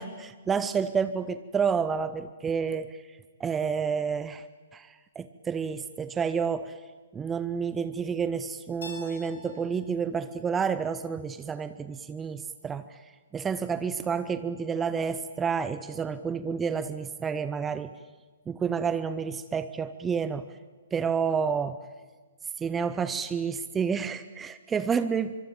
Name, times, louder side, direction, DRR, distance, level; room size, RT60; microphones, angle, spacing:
voice 1, 0.0-4.4 4.7-6.8 7.1-13.0 13.3-17.9 18.5-20.5 20.9-21.8 22.6-25.4, right 6 dB, 15° right, 13 dB, 0.7 m, -30 dB
Keyboard (musical), 8.8-11.6, left 2 dB, 65° left, 6.4 m, -48 dB
25.0 x 24.5 x 8.9 m, 1.4 s
figure-of-eight pair, 120°, 0 cm